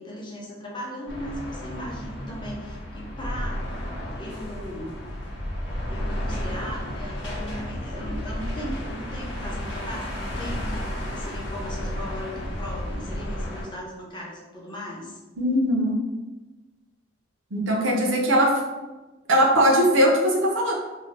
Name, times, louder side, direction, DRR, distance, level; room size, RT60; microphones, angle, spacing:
voice 1, 0.0-3.7 4.1-4.9 5.9-15.2, equal, 25° left, -3 dB, 0.5 m, -37 dB
sound 1, 1.1-13.6, equal, 70° left, 0.7 m, -32 dB
voice 2, 15.4-16.0 17.5-18.6 19.3-20.7, equal, 85° right, -1 dB, 0.6 m, -20 dB
2.6 x 2.1 x 3.2 m, 1.2 s
head